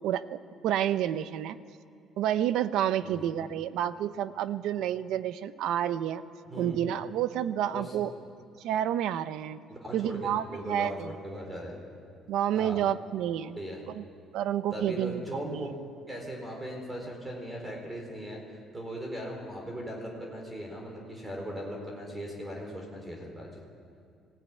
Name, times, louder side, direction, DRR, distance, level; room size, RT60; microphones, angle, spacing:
voice 1, 0.0-1.6 2.2-6.2 6.6-8.1 8.6-9.6 9.9-11.1 12.3-13.6 13.9-14.0 14.3-15.7, right 11 dB, 70° right, 13 dB, 0.7 m, -29 dB
voice 2, 9.7-11.8 12.5-12.8 13.6-13.8 14.7-15.7 16.1-18.4 18.7-23.6, equal, 10° right, 0 dB, 4.2 m, -38 dB
24.5 x 16.5 x 9.4 m, 2.3 s
cardioid pair, 180°, 0 cm